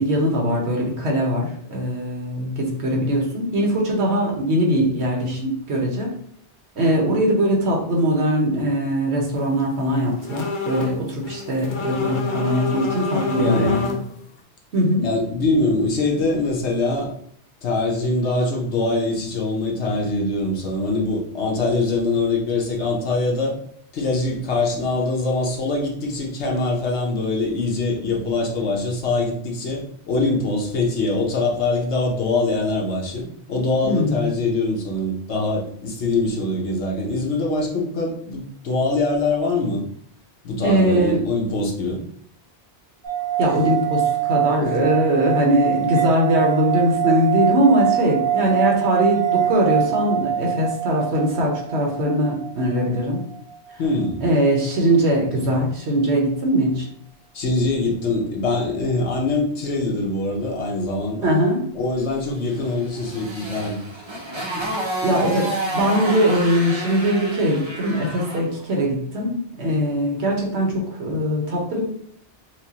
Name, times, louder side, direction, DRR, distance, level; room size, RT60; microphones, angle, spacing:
voice 1, 0.0-6.1 6.8-13.9 14.7-15.1 33.8-34.3 40.6-41.2 43.4-53.2 54.2-56.9 61.2-61.6 64.6-64.7 65.0-71.8, equal, 75° right, -1 dB, 1.3 m, -21 dB
sound 1, 10.2-11.0 11.2-14.1, left 3 dB, 55° left, 0.7 m, -27 dB
voice 2, 13.4-13.7 15.0-17.1 17.6-23.5 23.9-39.8 40.4-42.0 44.6-44.9 53.8-54.2 55.4-55.5 57.3-61.4 61.7-63.8 64.5-64.7, left 2 dB, 80° left, -1 dB, 1.2 m, -23 dB
sound 2, 43.0-54.4, right 12 dB, 55° right, 1.1 m, -24 dB
Motorcycle, 62.5-68.5, right 1 dB, 30° right, 0.6 m, -30 dB
4.6 x 2.2 x 2.9 m, 0.65 s
omnidirectional pair, 1.1 m